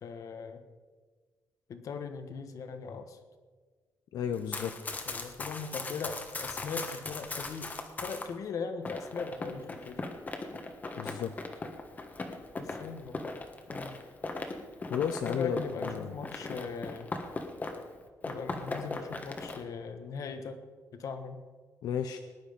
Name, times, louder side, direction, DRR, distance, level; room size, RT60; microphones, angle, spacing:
voice 1, 0.0-0.6 1.7-3.2 5.1-7.7 8.0-10.0 12.5-13.3 13.7-14.0 15.2-17.1 18.3-20.6 20.9-21.4, left 5 dB, 60° left, 8 dB, 1.4 m, -39 dB
voice 2, 4.1-4.8 11.0-11.3 14.9-16.1 21.8-22.2, left 8 dB, 85° left, 7 dB, 0.7 m, -33 dB
Run, 4.3-8.3 8.8-17.9 18.2-19.6, left 3 dB, 25° left, 1.4 m, -39 dB
20.0 x 10.0 x 5.2 m, 1.5 s
wide cardioid pair, 150°, 6 cm